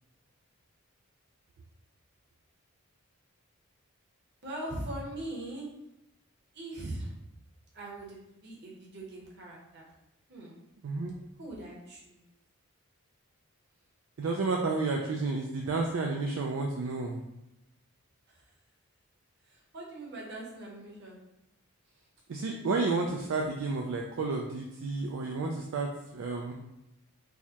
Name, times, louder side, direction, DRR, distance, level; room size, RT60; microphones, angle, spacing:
voice 1, 4.4-5.7 6.5-7.1 7.7-9.9 10.3-10.6 11.4-12.3 18.3-18.4 19.4-21.2, right 1 dB, 50° right, -3 dB, 0.9 m, -41 dB
voice 2, 10.8-11.1 14.2-17.2 22.3-26.5, right 3 dB, 65° right, 0 dB, 0.3 m, -31 dB
4.5 x 2.2 x 2.8 m, 0.89 s
head